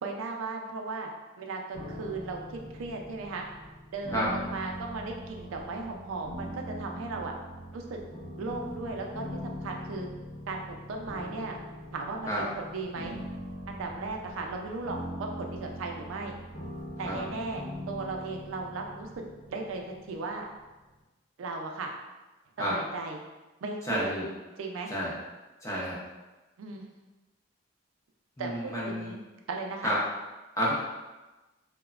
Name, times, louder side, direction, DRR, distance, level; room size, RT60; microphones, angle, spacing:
voice 1, 0.0-1.1 1.4-3.5 3.9-7.3 7.7-8.0 8.4-10.1 10.5-11.6 11.9-13.2 13.7-16.3 17.0-19.1 19.5-20.4 21.4-21.9 22.6-23.2 23.6-24.1 24.6-24.9 26.6-26.9 28.4-29.2 29.5-29.9, right 3 dB, 90° right, 2 dB, 0.4 m, -36 dB
sound 1, 1.7-20.7, equal, 65° left, 0.8 m, -42 dB
voice 2, 23.8-24.2 24.9-25.1 25.6-26.0 28.4-29.1 29.8-30.0 30.6-30.7, equal, 15° left, -6 dB, 0.5 m, -30 dB
2.9 x 2.0 x 2.3 m, 1.1 s
head